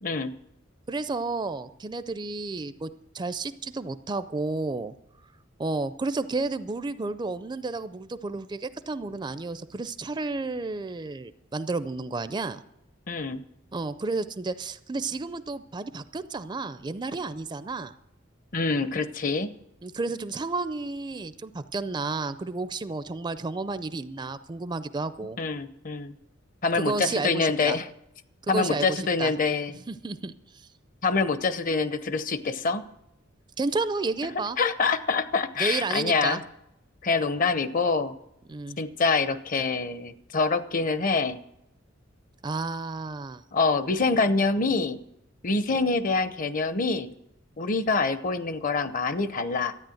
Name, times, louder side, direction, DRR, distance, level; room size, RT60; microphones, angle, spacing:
voice 1, 0.0-0.3 13.1-13.4 18.5-19.5 25.4-26.1 26.6-27.9 28.5-29.8 31.0-32.8 34.6-36.4 37.0-38.1 38.8-41.4 43.5-45.0 45.4-47.1 47.6-49.7, left 4 dB, 40° left, 13 dB, 0.7 m, -25 dB
voice 2, 0.9-2.9 3.1-4.9 5.6-12.6 13.7-17.9 19.8-25.4 26.7-27.8 28.5-29.3 29.9-30.3 33.6-34.6 35.6-36.4 38.5-38.8 42.4-43.4, right 3 dB, 20° right, 13 dB, 0.4 m, -31 dB
13.0 x 9.4 x 7.7 m, 0.82 s
head